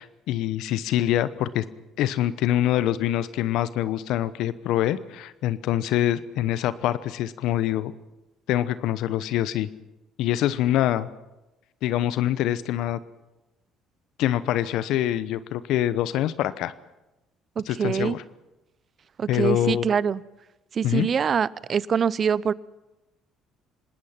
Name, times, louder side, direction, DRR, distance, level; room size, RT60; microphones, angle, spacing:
voice 1, 0.0-1.6 2.0-7.9 8.5-9.7 10.2-11.1 11.8-13.0 14.2-16.7 17.7-18.2 19.3-19.9 20.8-21.1, left 12 dB, 70° left, 15 dB, 0.9 m, -25 dB
voice 2, 17.6-18.2 19.2-20.2 20.7-22.5, right 7 dB, 45° right, 21 dB, 0.7 m, -24 dB
28.0 x 19.5 x 5.9 m, 0.99 s
hypercardioid pair, 60°, 0 cm